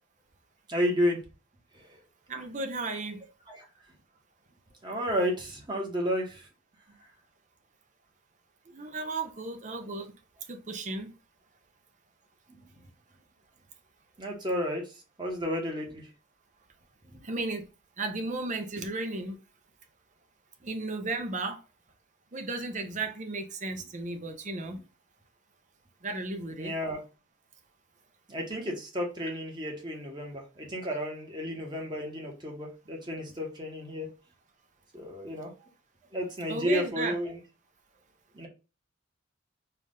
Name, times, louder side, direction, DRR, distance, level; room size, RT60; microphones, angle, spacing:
voice 1, 0.7-1.2 1.7-1.9 3.5-3.7 4.8-6.5 12.8-12.9 14.2-14.9 15.2-16.1 17.1-17.2 24.7-24.8 26.6-27.0 28.3-34.1 34.9-35.5 36.1-37.4 38.3-38.5, equal, 25° right, 1.3 m, -32 dB
voice 2, 2.3-3.2 8.7-10.1 10.5-11.1 17.2-17.7 18.0-19.4 20.6-21.6 22.3-24.8 26.0-26.7 36.5-37.1, right 3 dB, 40° right, 0.8 m, -34 dB
4.5 x 2.5 x 3.8 m
head